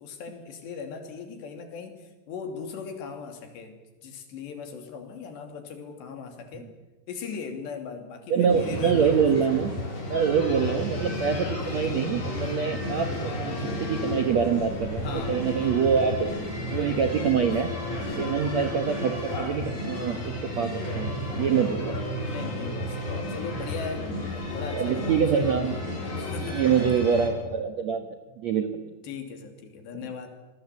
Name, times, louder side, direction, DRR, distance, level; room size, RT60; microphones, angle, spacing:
voice 1, 0.0-6.7 7.1-9.2 9.8-10.1 15.0-15.8 21.5-21.8 22.3-25.5 26.2-27.2 29.0-30.3, left 5 dB, 75° left, 5 dB, 4.9 m, -39 dB
voice 2, 8.3-13.5 13.8-16.3 16.7-17.7 18.2-22.1 24.7-25.7 26.5-28.1 28.4-28.9, right 7 dB, 70° right, 7 dB, 1.7 m, -25 dB
sound 1, 8.5-27.3, left 1 dB, 40° left, 6.3 m, -32 dB
28.0 x 21.0 x 8.3 m, 1.1 s
omnidirectional pair, 5.1 m